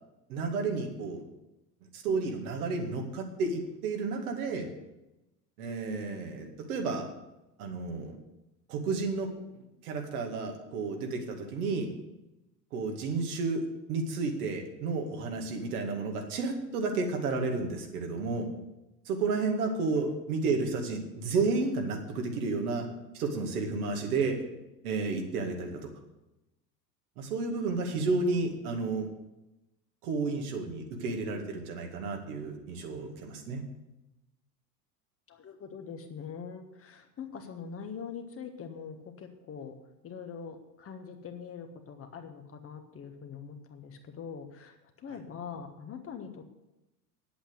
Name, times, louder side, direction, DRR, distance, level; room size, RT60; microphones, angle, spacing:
voice 1, 0.3-1.2 1.9-4.7 5.6-7.1 7.6-8.2 8.7-9.3 9.8-11.9 12.7-18.5 19.1-22.9 23.1-24.4 24.8-25.9 27.2-29.1 30.0-33.6, right 3 dB, 60° right, 3 dB, 2.2 m, -31 dB
voice 2, 35.3-39.7 40.0-46.6, left 6 dB, 25° left, 5 dB, 1.4 m, -43 dB
9.8 x 8.2 x 8.0 m, 0.96 s
figure-of-eight pair, 75°, 50 cm